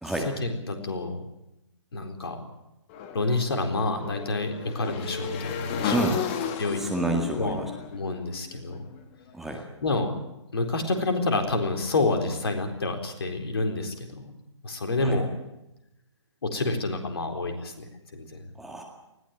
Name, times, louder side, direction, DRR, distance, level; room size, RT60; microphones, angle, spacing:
voice 1, 0.4-1.2 1.9-2.4 3.1-6.2 6.6-6.8 7.4-7.6 7.9-8.9 9.8-10.1 10.5-14.3 14.6-15.3 16.4-18.5, left 2 dB, 55° left, 4 dB, 4.1 m, -28 dB
Motorcycle / Engine, 2.9-9.0, left 7 dB, 25° left, 1.9 m, -34 dB
voice 2, 6.8-7.7 9.3-9.6 15.0-15.2 18.6-18.8, right 2 dB, ahead, 0 dB, 2.0 m, -28 dB
20.0 x 16.5 x 9.0 m, 0.90 s
figure-of-eight pair, 135°, 15 cm